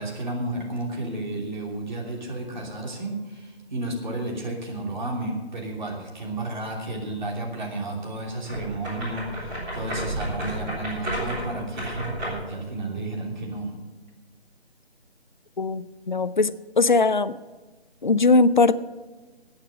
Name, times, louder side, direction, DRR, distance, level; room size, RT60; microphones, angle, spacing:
voice 1, 0.0-13.8, right 2 dB, 45° right, -1 dB, 2.9 m, -32 dB
sound 1, 8.4-12.5, right 1 dB, 10° right, 3.6 m, -32 dB
voice 2, 15.6-17.3 18.0-18.7, left 3 dB, 45° left, 15 dB, 0.5 m, -20 dB
14.0 x 8.9 x 6.3 m, 1.3 s
figure-of-eight pair, 155°, 32 cm